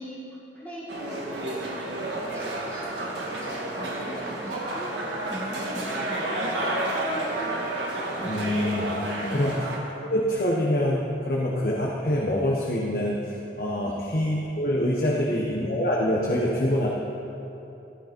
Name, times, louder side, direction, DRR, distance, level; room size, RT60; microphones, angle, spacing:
voice 1, 0.0-2.0 2.3-2.9 3.4-4.9 5.2-7.4 8.2-8.4 9.2-9.5 13.8-14.0 15.0-15.4, equal, 10° left, -8 dB, 1.8 m, -40 dB
sound 1, 0.9-9.8, right 1 dB, 85° right, 2.0 m, -30 dB
voice 2, 8.3-8.9 9.3-9.6 10.1-16.9, left 1 dB, 55° left, -3 dB, 1.2 m, -25 dB
13.5 x 12.5 x 4.5 m, 3.0 s
head